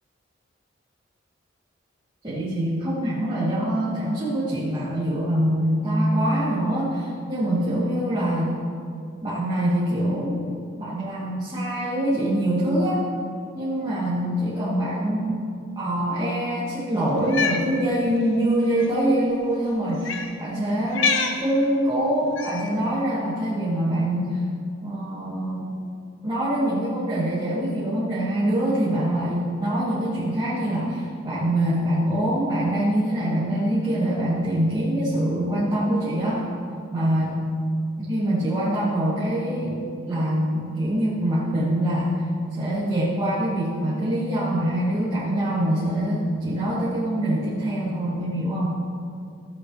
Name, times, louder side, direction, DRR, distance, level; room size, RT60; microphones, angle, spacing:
voice 1, 2.2-8.6 9.2-10.5 10.8-13.0 13.5-15.4 15.8-24.5 24.8-25.7 26.2-36.5 36.9-37.4 38.0-39.8 40.1-42.2 42.6-48.8, right 1 dB, 25° right, -12 dB, 2.8 m, -24 dB
Cat, 17.2-17.6 18.7-18.9 20.0-20.3 20.9-21.4 22.4-22.7, left 5 dB, 80° left, 0.9 m, -25 dB
17.5 x 8.0 x 3.3 m, 2.3 s
head